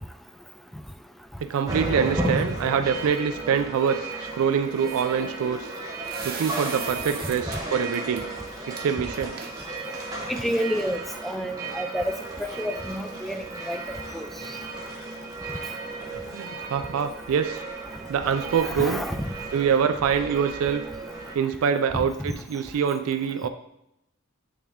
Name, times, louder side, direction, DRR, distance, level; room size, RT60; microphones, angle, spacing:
voice 1, 1.4-5.7 6.2-8.3 8.7-9.4 16.1-17.6 18.1-19.0 19.5-20.8 21.3-23.5, right 7 dB, 75° right, 9 dB, 0.3 m, -25 dB
sound 1, 1.7-21.4, right 2 dB, 15° right, 1.1 m, -34 dB
sound 2, 2.0-2.7 4.7-7.6 7.9-8.2 8.8-8.9 9.1-10.3, right 5 dB, 50° right, 0.7 m, -40 dB
voice 2, 10.3-14.3 18.6-19.3 21.9-22.0, equal, ahead, 7 dB, 0.3 m, -30 dB
8.5 x 3.4 x 3.5 m, 0.83 s
head